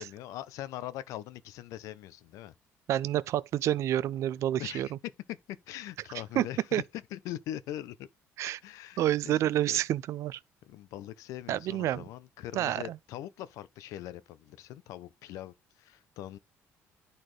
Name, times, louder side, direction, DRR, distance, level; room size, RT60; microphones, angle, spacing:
voice 1, 0.0-2.5 4.6-4.9 5.3-5.4 5.7-8.1 8.6-9.8 10.6-16.4, left 13 dB, 85° left, 0.6 m, -42 dB
voice 2, 2.9-4.9 6.4-6.5 6.7-6.8 8.4-8.6 9.0-10.4 11.5-12.0 12.5-13.0, right 12 dB, 65° right, 0.4 m, -28 dB
11.0 x 4.1 x 3.2 m
cardioid pair, 145°, 5 cm